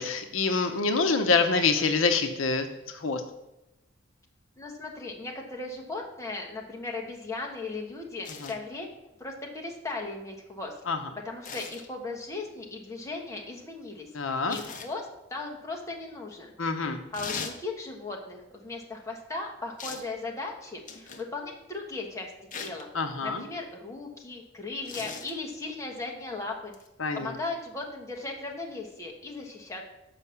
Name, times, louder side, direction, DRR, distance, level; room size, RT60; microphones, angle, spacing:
voice 1, 0.0-2.7 2.9-3.2 8.4-8.5 10.9-11.0 14.1-14.6 16.6-17.0 22.9-23.4 27.0-27.3, left 4 dB, 75° left, 6 dB, 0.8 m, -26 dB
voice 2, 4.6-8.9 9.2-10.7 11.2-16.5 17.1-22.3 22.6-22.9 23.2-26.7 27.1-29.8, left 3 dB, 15° left, 0 dB, 1.3 m, -37 dB
sound 1, 8.2-8.6 11.4-11.9 14.5-14.9 17.1-17.6 19.8-20.1 20.9-21.3 22.5-22.8 24.8-25.3 26.7-26.9, left 5 dB, 40° left, 0.9 m, -39 dB
7.0 x 5.8 x 7.0 m, 0.94 s
head